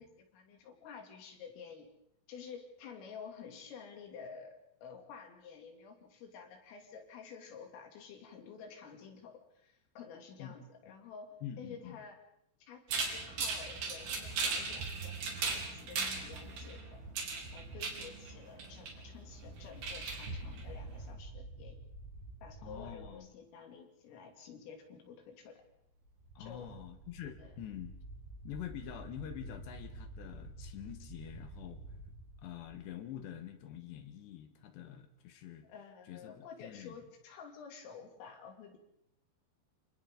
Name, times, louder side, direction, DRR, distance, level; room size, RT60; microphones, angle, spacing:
voice 1, 0.0-1.9 2.3-4.6 4.8-11.3 11.6-12.2 12.6-17.0 17.5-21.8 22.4-25.6 26.4-26.7 27.4-27.5 35.6-38.8, left 6 dB, 90° left, 2 dB, 5.4 m, -51 dB
voice 2, 11.4-12.0 22.6-23.3 26.4-27.9 28.4-31.8 32.4-35.7 36.1-37.0, left 10 dB, 70° left, 8 dB, 3.3 m, -46 dB
sound 1, 12.9-21.1, right 4 dB, 55° right, 5.3 m, -38 dB
sound 2, 19.3-23.1 25.9-33.2, right 2 dB, 85° right, 9.5 m, -49 dB
28.5 x 27.0 x 3.9 m, 0.79 s
omnidirectional pair, 5.7 m